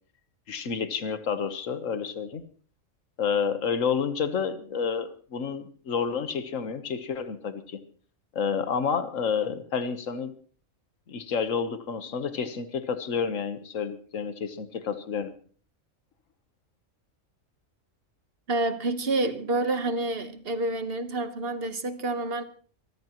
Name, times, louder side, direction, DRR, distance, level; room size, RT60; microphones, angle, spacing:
voice 1, 0.5-2.4 3.2-7.8 8.3-10.3 11.1-15.3, left 6 dB, 70° left, 1.6 m, -29 dB
voice 2, 18.5-22.4, right 2 dB, 45° right, 1.4 m, -28 dB
25.0 x 14.0 x 3.0 m
omnidirectional pair, 1.4 m